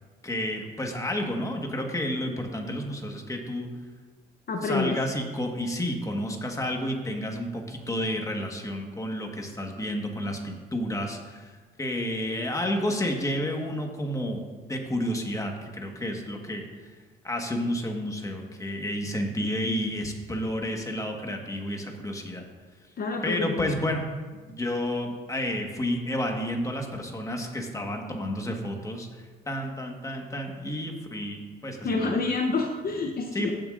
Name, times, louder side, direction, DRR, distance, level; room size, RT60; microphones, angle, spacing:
voice 1, 0.2-3.7 4.6-11.5 11.8-16.6 17.2-22.4 23.2-24.0 24.5-32.2 33.3-33.5, left 1 dB, 15° left, 2 dB, 1.5 m, -31 dB
voice 2, 4.5-5.0 23.0-23.7 31.8-33.5, left 3 dB, 50° left, 3 dB, 0.8 m, -28 dB
15.0 x 7.3 x 2.6 m, 1.4 s
cardioid pair, 90°, 20 cm